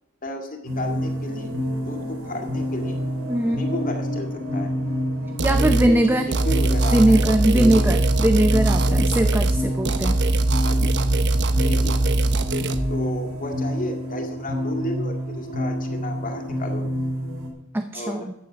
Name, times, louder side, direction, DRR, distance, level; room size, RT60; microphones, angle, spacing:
voice 1, 0.2-1.5 1.8-3.0 3.4-4.7 5.4-7.9 10.6-10.8 11.6-12.0 12.9-16.8 17.9-18.3, left 1 dB, 40° left, 4 dB, 2.2 m, -33 dB
sound 1, 0.6-17.5, equal, 85° right, 3.5 m, -28 dB
voice 2, 3.3-3.6 5.4-6.3 6.9-10.2 17.7-18.3, right 1 dB, 10° right, 7 dB, 0.6 m, -20 dB
sound 2, 5.4-5.9 6.3-9.6 9.8-12.8, right 2 dB, 55° right, 1.0 m, -21 dB
14.0 x 9.0 x 5.8 m, 0.91 s
head